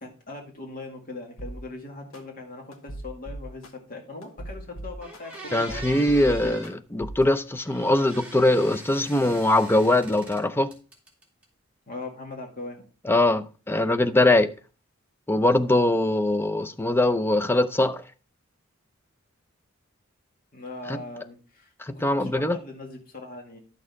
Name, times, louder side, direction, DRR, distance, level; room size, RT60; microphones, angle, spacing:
voice 1, 0.0-5.9 6.2-6.6 11.9-12.8 20.5-23.6, left 2 dB, 45° left, 2.0 m, -40 dB
sound 1, 1.4-1.6 2.1-2.2 2.7-3.7 4.2-5.4 5.7-6.7 7.0-7.2, right 1 dB, 90° left, 1.3 m, -37 dB
sound 2, 4.5-4.6 5.0-6.7 7.6-10.4 10.7-11.4, right 1 dB, 5° right, 2.4 m, -43 dB
voice 2, 5.5-6.6 6.9-10.7 13.1-14.5 15.3-18.0 20.9-21.0 21.8-22.6, left 1 dB, 10° left, 0.5 m, -22 dB
11.0 x 6.5 x 3.6 m
head